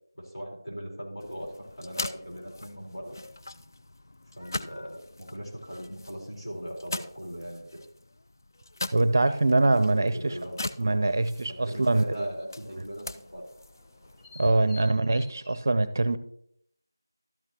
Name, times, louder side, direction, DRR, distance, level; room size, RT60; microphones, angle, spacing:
voice 1, 0.1-3.2 4.4-7.6 10.0-11.0 11.5-13.5, equal, 85° left, -1 dB, 3.9 m, -39 dB
sound 1, 1.2-14.5, left 2 dB, 55° left, 0.4 m, -41 dB
voice 2, 8.9-10.4 10.8-12.3 14.4-16.2, right 2 dB, 45° right, 14 dB, 0.5 m, -23 dB
sound 2, 9.2-15.6, left 3 dB, 10° left, 3.3 m, -55 dB
12.5 x 8.3 x 2.9 m, 0.70 s
figure-of-eight pair, 170°, 2 cm